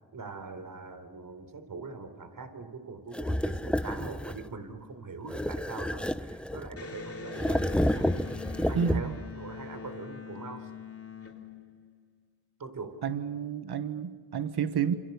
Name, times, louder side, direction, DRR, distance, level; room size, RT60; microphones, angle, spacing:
voice 1, 0.1-10.7 12.6-13.0, right 4 dB, 55° right, 9 dB, 3.9 m, -42 dB
sound 1, 3.1-4.5 5.3-6.8 7.3-9.3, left 1 dB, 5° left, 0.8 m, -30 dB
Electric guitar, 6.7-12.2, left 5 dB, 35° left, 3.5 m, -43 dB
voice 2, 8.7-9.1 13.0-14.9, right 7 dB, 70° right, 10 dB, 1.6 m, -30 dB
28.5 x 27.5 x 7.1 m, 1.5 s
cardioid pair, 80°, 40 cm